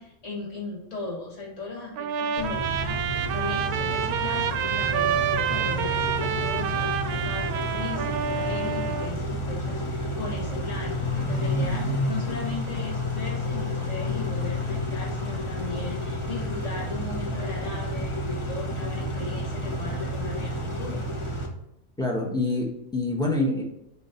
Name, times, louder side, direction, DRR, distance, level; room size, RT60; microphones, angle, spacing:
voice 1, 0.0-21.0, left 3 dB, 55° left, -1 dB, 1.8 m, -37 dB
Trumpet, 2.0-9.1, right 8 dB, 85° right, 1.1 m, -28 dB
Car / Idling / Accelerating revving vroom, 2.4-21.5, left 1 dB, 25° left, 0.7 m, -30 dB
voice 2, 22.0-23.6, left 2 dB, 5° left, -1 dB, 1.0 m, -26 dB
7.2 x 3.0 x 4.3 m, 0.82 s
omnidirectional pair, 1.5 m